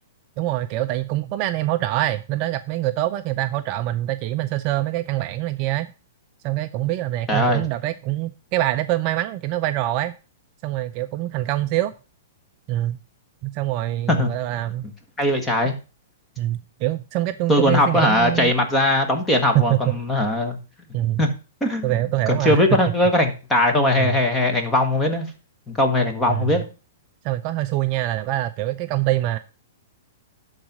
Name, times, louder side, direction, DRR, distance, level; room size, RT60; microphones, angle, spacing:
voice 1, 0.4-5.9 6.4-10.1 10.6-11.9 12.7-13.0 13.4-14.8 16.4-18.5 19.5-19.8 20.9-21.2 21.8-22.6 24.0-24.2 26.3-26.6 27.2-29.4, right 15 dB, 35° right, 0.4 m, -24 dB
voice 2, 7.3-7.6 14.1-14.3 15.2-15.8 17.5-20.6 21.2-21.3 21.6-21.9 22.3-25.3 25.7-26.6, left 1 dB, 10° left, 1.4 m, -20 dB
11.5 x 4.1 x 5.9 m
hypercardioid pair, 160°, 0 cm